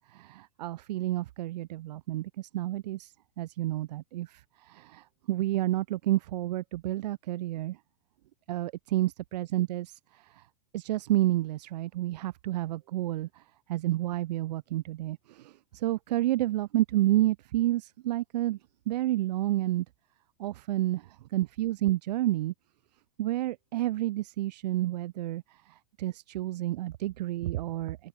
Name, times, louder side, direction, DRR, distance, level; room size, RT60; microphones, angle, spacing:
voice 1, 0.2-3.1 3.4-4.3 4.7-5.0 5.3-7.8 8.5-9.9 10.7-13.3 13.7-15.5 15.8-18.6 18.9-19.8 20.4-21.0 21.3-22.5 23.2-25.4 26.0-28.0, right 15 dB, 75° right, 0.6 m, -29 dB
open air
supercardioid pair, 145°, 21 cm